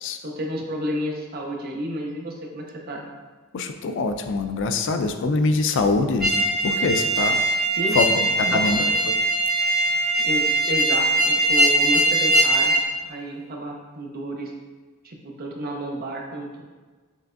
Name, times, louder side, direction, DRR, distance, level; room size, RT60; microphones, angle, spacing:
voice 1, 0.2-3.1 7.8-8.0 8.5-8.9 10.2-12.7 13.0-14.5 15.0-16.6, right 1 dB, 45° right, 0 dB, 0.7 m, -31 dB
voice 2, 3.5-6.3 6.6-7.4 7.9-8.8, left 3 dB, 60° left, 7 dB, 0.4 m, -24 dB
sound 1, 6.2-12.8, right 1 dB, ahead, 1.1 m, -21 dB
6.4 x 3.3 x 2.5 m, 1.3 s
head